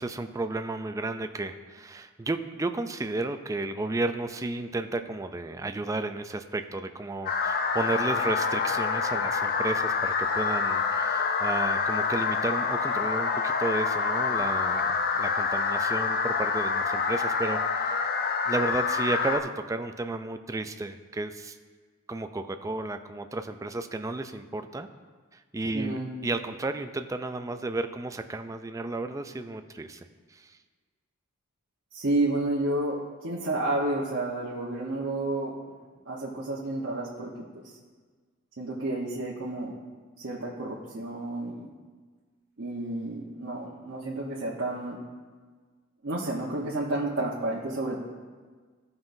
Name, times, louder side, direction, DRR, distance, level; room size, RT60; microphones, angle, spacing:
voice 1, 0.0-18.0 18.5-21.6 22.1-24.9 25.3-30.6, right 2 dB, 15° right, 8 dB, 0.3 m, -33 dB
sound 1, 7.3-19.4, left 5 dB, 45° left, 0.4 m, -27 dB
voice 2, 25.7-26.1 31.9-33.0 33.2-35.7 36.1-37.6 38.6-39.7 40.2-41.7 42.6-45.0 46.0-48.0, right 2 dB, 65° right, -6 dB, 1.0 m, -30 dB
14.5 x 5.5 x 2.6 m, 1.5 s
head